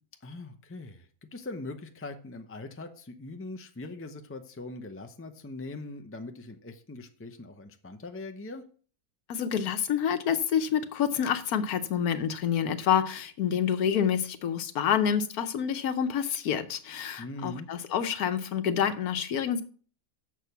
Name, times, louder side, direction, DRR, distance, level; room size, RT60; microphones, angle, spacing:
voice 1, 0.2-1.1 1.3-8.6 17.2-17.7, left 2 dB, 20° left, 6 dB, 0.3 m, -41 dB
voice 2, 9.3-19.6, left 8 dB, 70° left, 10 dB, 1.3 m, -28 dB
7.3 x 6.3 x 6.8 m, 0.43 s
omnidirectional pair, 1.6 m